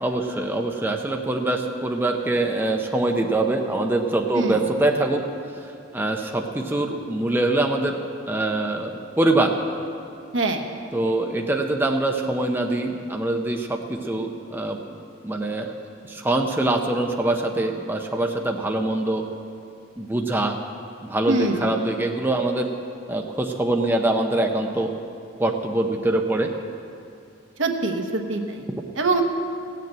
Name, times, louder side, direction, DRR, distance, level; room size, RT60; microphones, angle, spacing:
voice 1, 0.0-5.2 5.9-8.0 8.3-9.6 10.9-15.7 16.1-19.3 20.0-20.6 21.0-22.7 23.1-24.9 25.4-26.5 28.7-28.8, right 2 dB, 10° right, 2 dB, 0.6 m, -24 dB
voice 2, 10.3-10.6 21.3-21.7 27.6-28.7 28.9-29.2, right 2 dB, 75° right, 3 dB, 1.2 m, -24 dB
16.0 x 6.8 x 8.8 m, 2.5 s
head